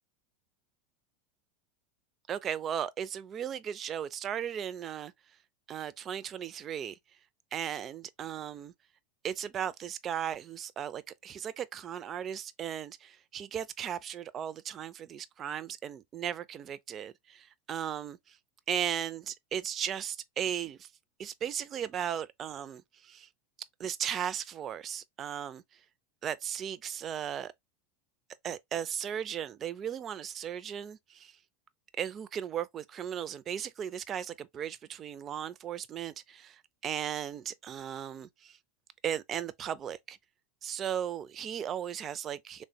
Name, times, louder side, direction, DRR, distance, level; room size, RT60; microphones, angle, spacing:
voice 1, 2.3-5.1 5.7-7.0 7.5-8.7 9.2-18.4 18.7-20.9 21.2-23.3 23.8-25.8 26.2-27.5 28.4-31.4 32.0-38.6 39.0-40.2 40.6-42.6, right 9 dB, 35° right, 0.3 m, -36 dB
3.2 x 2.1 x 2.6 m
hypercardioid pair, 100°, 0 cm